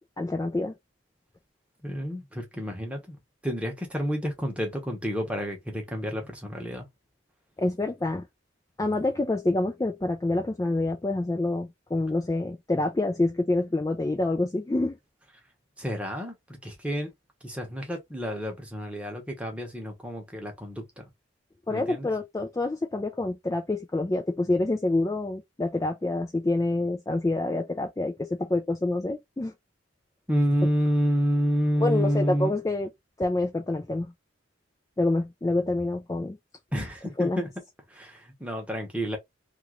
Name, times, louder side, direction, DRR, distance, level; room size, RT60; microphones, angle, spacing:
voice 1, 0.2-0.8 7.6-8.2 8.8-15.0 21.7-29.5 31.8-32.9 33.2-34.1 35.0-36.4 37.2-37.4, left 2 dB, 15° left, 0.3 m, -27 dB
voice 2, 1.8-3.2 3.4-6.9 15.8-17.1 17.4-21.0 21.7-22.1 30.3-32.5 36.7-37.5 37.9-39.2, equal, 5° right, 0.9 m, -29 dB
2.9 x 2.4 x 2.9 m
head